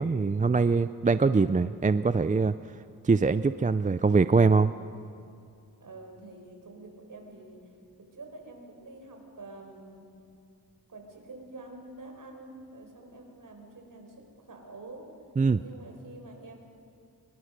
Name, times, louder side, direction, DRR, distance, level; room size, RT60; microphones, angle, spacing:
voice 1, 0.0-2.5 3.0-4.7 15.4-15.6, right 4 dB, 20° right, 13 dB, 0.5 m, -23 dB
voice 2, 5.8-7.6 8.1-10.1 10.9-15.1 15.5-16.6, right 2 dB, 60° right, 3 dB, 4.8 m, -47 dB
24.5 x 22.5 x 6.6 m, 2.4 s
wide cardioid pair, 90°, 37 cm